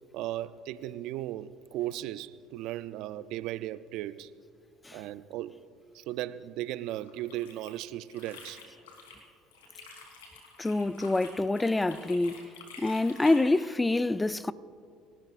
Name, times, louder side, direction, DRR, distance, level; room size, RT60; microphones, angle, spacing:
voice 1, 0.1-4.3 4.9-5.6 5.9-8.6, right 14 dB, 65° right, 0.4 m, -36 dB
sound 1, 7.1-9.2 9.5-13.7, left 4 dB, 90° left, 3.3 m, -49 dB
voice 2, 10.6-12.5 12.8-14.5, left 2 dB, 15° left, 0.5 m, -26 dB
29.0 x 13.5 x 2.5 m
hypercardioid pair, 70°, 0 cm